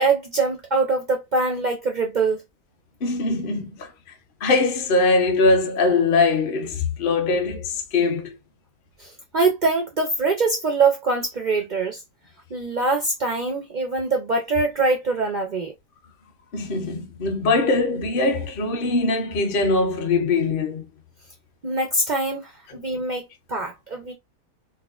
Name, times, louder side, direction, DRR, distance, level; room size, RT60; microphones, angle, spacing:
voice 1, 0.0-2.4 9.0-12.0 12.5-15.7 21.6-24.1, right 3 dB, 80° right, 0.4 m, -23 dB
voice 2, 3.0-3.9 4.4-8.4 16.5-20.9 22.7-22.8, left 3 dB, 45° left, 0.7 m, -22 dB
4.5 x 2.1 x 2.4 m
omnidirectional pair, 1.8 m